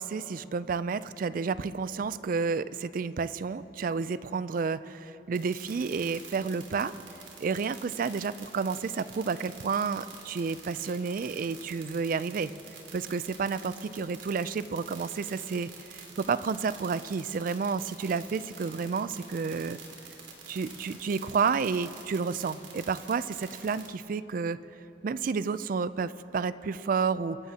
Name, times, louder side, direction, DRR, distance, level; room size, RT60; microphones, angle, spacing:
voice 1, 0.0-6.9 7.4-12.5 12.9-19.8 20.5-24.6 25.0-27.4, right 5 dB, 45° right, 16 dB, 0.3 m, -30 dB
sound 1, 5.3-23.9, right 6 dB, 85° right, 2.5 m, -47 dB
26.0 x 12.0 x 2.8 m, 3.0 s
head